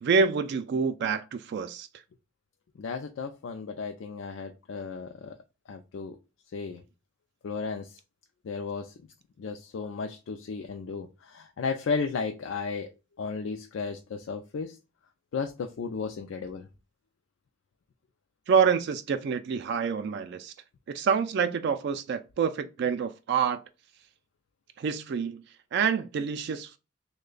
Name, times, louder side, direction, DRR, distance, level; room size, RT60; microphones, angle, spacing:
voice 1, 0.0-1.9 18.5-20.5 20.9-23.6 24.8-25.4 25.7-26.8, right 6 dB, 60° right, 0.3 m, -27 dB
voice 2, 2.8-5.4 5.7-6.2 6.5-6.8 7.4-8.0 8.4-8.9 9.4-12.9 13.2-14.8 15.3-16.7, left 5 dB, 90° left, 0.4 m, -34 dB
3.2 x 2.2 x 3.7 m
head